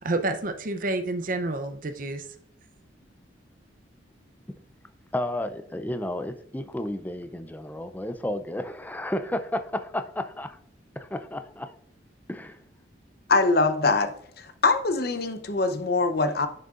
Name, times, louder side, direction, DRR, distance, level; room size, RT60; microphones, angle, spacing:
voice 1, 0.0-2.3, right 2 dB, 45° right, 0.6 m, -29 dB
voice 2, 5.1-10.6 11.0-11.7 12.3-12.6, left 1 dB, 10° left, 0.4 m, -32 dB
voice 3, 13.3-14.1 14.4-16.5, left 3 dB, 55° left, 0.7 m, -23 dB
10.5 x 6.5 x 2.5 m
head